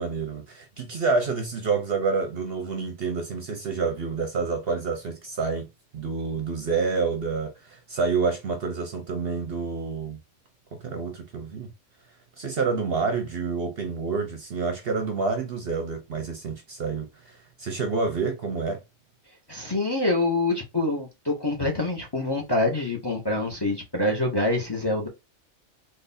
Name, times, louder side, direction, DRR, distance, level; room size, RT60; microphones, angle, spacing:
voice 1, 0.0-5.7 5.9-10.2 10.7-11.7 12.4-18.8, right 4 dB, 55° right, 0.8 m, -28 dB
voice 2, 19.5-25.1, left 2 dB, 20° left, 0.7 m, -26 dB
3.7 x 2.6 x 2.5 m
omnidirectional pair, 1.4 m